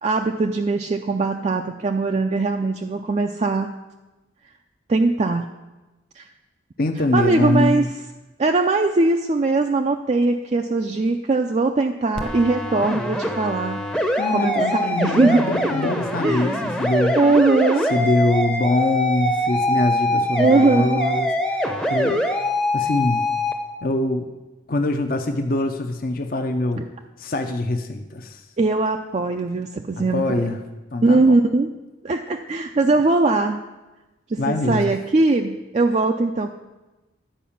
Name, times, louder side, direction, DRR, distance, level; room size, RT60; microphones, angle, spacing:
voice 1, 0.0-3.7 4.9-5.4 6.2-6.3 7.1-7.9 8.4-13.8 14.3-15.4 16.2-16.6 17.2-17.9 20.4-21.0 26.8-26.9 28.6-30.4 31.0-31.7 32.0-33.6 34.3-36.5, right 3 dB, 35° right, 4 dB, 0.4 m, -20 dB
voice 2, 6.8-7.9 14.2-17.2 17.9-22.2 22.7-23.2 23.8-24.3 24.7-26.9 27.2-28.4 30.0-30.6 30.9-31.3 34.4-34.9, left 2 dB, 45° left, 5 dB, 0.6 m, -23 dB
sound 1, 12.2-23.5, left 1 dB, 5° left, 0.6 m, -23 dB
10.0 x 5.0 x 7.0 m, 1.1 s
head